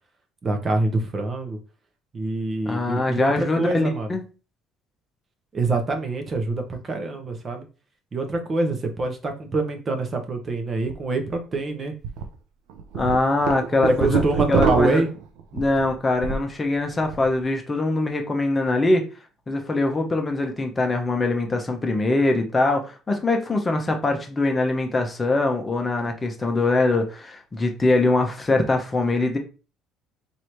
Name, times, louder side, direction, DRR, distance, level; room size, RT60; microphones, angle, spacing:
voice 1, 0.4-1.6 2.1-4.2 5.5-7.7 8.1-11.9 13.8-15.1, right 2 dB, 30° right, 5 dB, 0.9 m, -25 dB
voice 2, 2.7-4.2 12.9-14.2 14.5-15.0 15.5-19.0 19.5-29.4, left 2 dB, 20° left, 4 dB, 0.8 m, -23 dB
sound 1, 10.8-10.9 11.4-11.5 12.0-12.2 12.7-16.5 16.9-17.3, right 6 dB, 85° right, 0.6 m, -25 dB
3.1 x 2.7 x 4.5 m, 0.34 s
cardioid pair, 105°, 0 cm